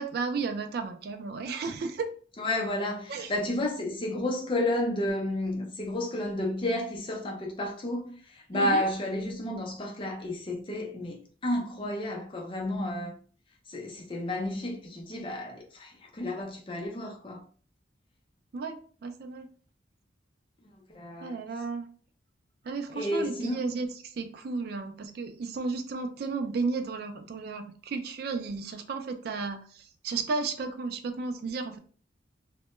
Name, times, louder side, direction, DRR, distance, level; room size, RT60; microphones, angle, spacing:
voice 1, 0.0-2.1 3.1-3.3 8.5-8.9 18.5-19.5 21.2-21.9 22.6-31.8, right 4 dB, 55° right, 0.3 m, -33 dB
voice 2, 2.4-13.2 13.7-17.4 20.9-21.4 22.9-23.7, left 1 dB, 30° left, 0.5 m, -31 dB
2.1 x 2.1 x 2.9 m
head